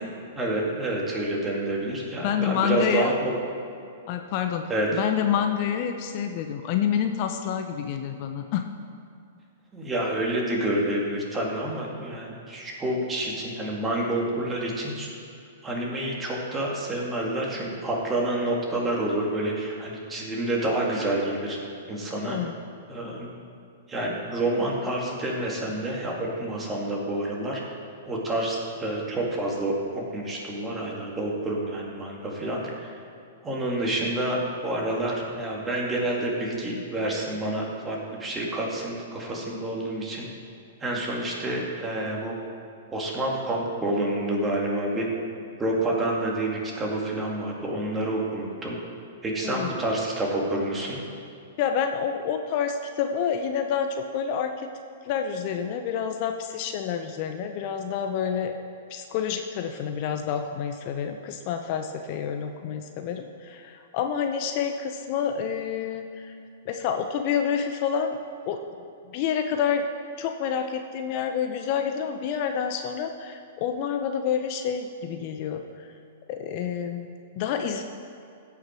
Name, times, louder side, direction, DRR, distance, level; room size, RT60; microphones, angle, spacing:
voice 1, 0.4-3.3 4.7-4.9 9.7-15.1 15.6-21.6 21.9-22.4 22.9-23.4 23.9-27.6 28.0-33.0 33.4-40.3 40.8-42.4 42.9-45.1 45.6-46.5 46.8-48.8 49.2-51.0, right 1 dB, 15° right, -2 dB, 2.3 m, -28 dB
voice 2, 2.2-3.2 4.1-4.6 4.9-8.6 22.2-22.6 49.4-49.7 51.6-54.7 55.0-58.5 58.9-66.4 66.7-68.2 68.5-68.7 69.1-69.8 70.2-75.9 76.3-77.8, left 8 dB, 45° left, 6 dB, 0.6 m, -28 dB
16.0 x 5.9 x 4.6 m, 2.5 s
hypercardioid pair, 110°, 0 cm